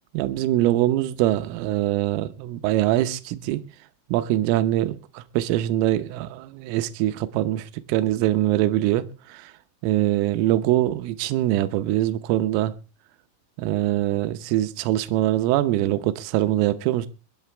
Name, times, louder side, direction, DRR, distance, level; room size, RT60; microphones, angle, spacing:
voice 1, 0.1-3.6 4.1-9.5 9.8-12.7 13.6-17.1, right 14 dB, 85° right, 3.5 m, -23 dB
22.5 x 12.0 x 3.4 m
omnidirectional pair, 5.8 m